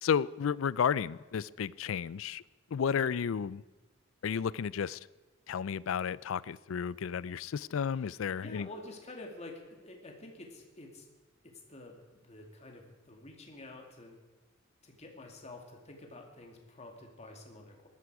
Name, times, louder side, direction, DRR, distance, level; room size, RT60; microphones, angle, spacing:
voice 1, 0.0-2.4 2.7-3.6 4.2-5.0 5.5-8.7, left 7 dB, 75° left, 21 dB, 0.4 m, -32 dB
voice 2, 8.4-11.1 11.4-14.2 14.8-17.9, left 2 dB, 35° left, 2 dB, 2.4 m, -49 dB
19.0 x 13.5 x 4.8 m, 1.2 s
head